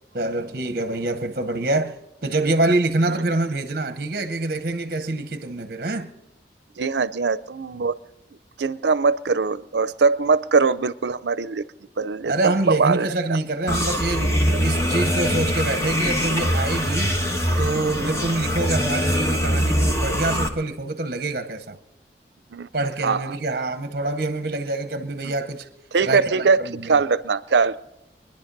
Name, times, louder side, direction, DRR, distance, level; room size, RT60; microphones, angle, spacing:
voice 1, 0.1-1.9 2.2-6.1 12.2-14.3 14.6-17.1 17.6-21.8 22.7-25.6 26.0-27.0, right 2 dB, 50° right, 0.8 m, -25 dB
voice 2, 6.8-8.0 8.6-11.6 12.0-13.1 14.5-14.6 18.0-18.2 22.5-22.7 23.0-23.4 25.9-27.8, right 4 dB, 80° right, 0.6 m, -22 dB
sound 1, 13.7-20.5, equal, 15° left, 1.2 m, -23 dB
23.5 x 10.5 x 5.3 m
head